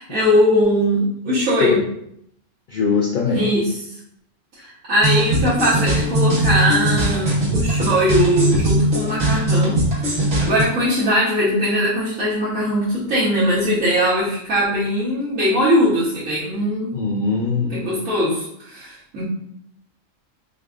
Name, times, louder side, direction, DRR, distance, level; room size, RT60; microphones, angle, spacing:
voice 1, 0.0-1.8 3.3-3.7 4.6-9.8 10.0-16.9 17.7-19.2, equal, 90° right, -10 dB, 1.4 m, -20 dB
voice 2, 2.7-3.5 16.9-17.9, left 5 dB, 70° left, -2 dB, 0.4 m, -21 dB
sound 1, 5.0-10.6, right 1 dB, 55° right, 1.4 m, -20 dB
3.6 x 3.3 x 2.4 m, 0.73 s
omnidirectional pair, 1.3 m